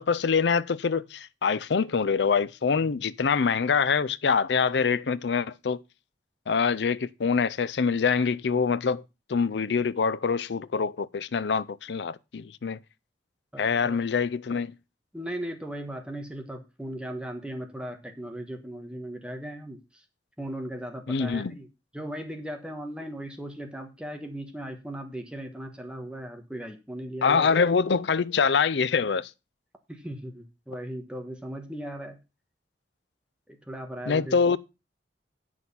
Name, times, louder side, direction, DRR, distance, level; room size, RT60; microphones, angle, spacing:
voice 1, 0.0-5.8 6.5-9.0 9.3-12.8 13.6-14.7 21.1-21.6 27.2-29.3 34.1-34.6, left 5 dB, 75° left, 0.5 m, -25 dB
voice 2, 13.5-14.0 15.1-20.0 20.4-21.7 21.9-27.5 29.9-32.2 33.5-34.6, right 1 dB, 5° right, 1.3 m, -37 dB
9.3 x 6.3 x 5.5 m
head